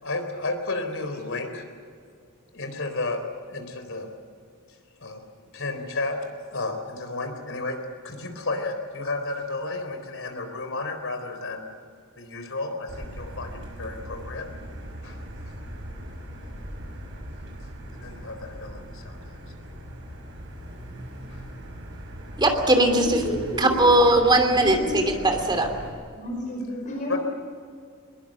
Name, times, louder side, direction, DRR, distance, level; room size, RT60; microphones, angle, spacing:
voice 1, 0.0-1.6 2.5-3.2 3.5-4.1 5.0-5.2 5.5-6.2 6.5-7.8 8.0-11.6 12.2-14.5 15.0-15.2 18.0-19.4 21.3-21.4 27.1-27.2, left 2 dB, 60° left, 6 dB, 4.1 m, -32 dB
Motor vehicle (road), 12.9-25.9, equal, 55° right, 6.2 m, -39 dB
voice 2, 22.4-23.1 23.6-25.7, right 1 dB, 20° right, 5 dB, 2.9 m, -19 dB
voice 3, 22.9-23.9 24.5-25.0 26.2-27.2, left 1 dB, 35° left, 0 dB, 5.0 m, -32 dB
22.0 x 22.0 x 7.8 m, 2.2 s
head